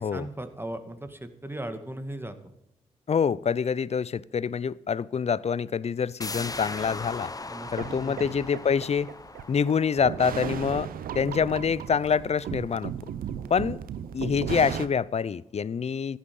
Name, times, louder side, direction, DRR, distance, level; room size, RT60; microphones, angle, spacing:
voice 1, 0.0-2.3 7.5-8.4, right 1 dB, 15° right, 9 dB, 2.1 m, -38 dB
voice 2, 3.1-7.3 7.7-9.1 9.5-10.9 11.1-12.9 13.5-13.8 14.1-16.2, left 6 dB, 45° left, 21 dB, 0.6 m, -26 dB
sound 1, 6.2-11.7 12.0-12.1, left 3 dB, 25° left, 1.0 m, -40 dB
sound 2, 7.6-14.9, right 9 dB, 80° right, 0.8 m, -36 dB
14.0 x 11.5 x 5.4 m, 0.79 s
supercardioid pair, 40°, 15 cm